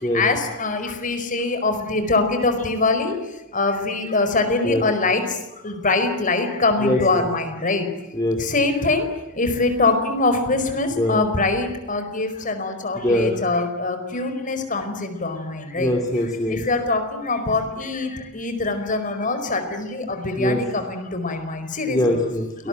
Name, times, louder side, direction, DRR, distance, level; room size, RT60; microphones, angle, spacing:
voice 1, 0.1-3.2 3.5-5.2 5.6-7.9 8.4-9.1 9.4-16.0 16.5-22.2 22.6-22.7, left 3 dB, 35° left, 7 dB, 4.8 m, -23 dB
voice 2, 6.8-7.2 8.1-8.4 11.0-11.2 13.0-13.3 15.8-16.6 20.4-20.6 21.9-22.7, left 1 dB, 15° left, 2 dB, 2.8 m, -22 dB
28.5 x 20.5 x 9.1 m, 1.0 s
head